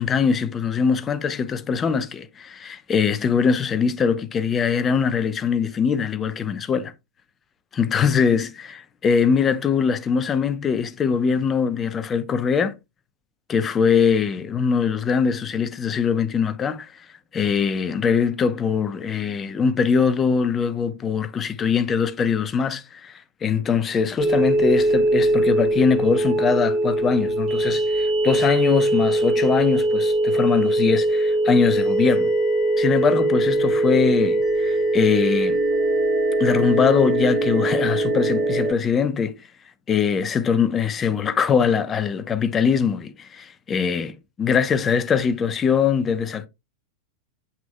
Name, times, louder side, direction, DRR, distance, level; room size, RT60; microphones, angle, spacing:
voice 1, 0.0-6.9 7.7-12.7 13.5-16.9 17.3-32.3 32.8-35.6 36.4-39.3 39.9-46.5, left 6 dB, 20° left, 0.8 m, -22 dB
sound 1, 24.2-38.7, right 1 dB, 15° right, 3.4 m, -21 dB
7.3 x 5.9 x 2.3 m
figure-of-eight pair, 90°, 0 cm